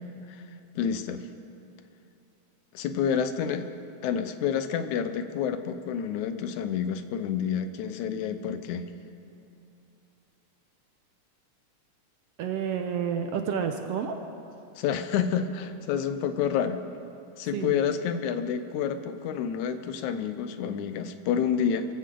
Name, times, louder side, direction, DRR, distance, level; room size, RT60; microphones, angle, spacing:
voice 1, 0.8-1.3 2.7-3.7 4.0-8.9 14.8-16.8 17.4-21.9, left 7 dB, 90° left, 10 dB, 2.2 m, -29 dB
voice 2, 12.4-14.2 17.5-17.8, right 7 dB, 70° right, 6 dB, 1.6 m, -29 dB
24.5 x 15.0 x 3.8 m, 2.7 s
omnidirectional pair, 3.3 m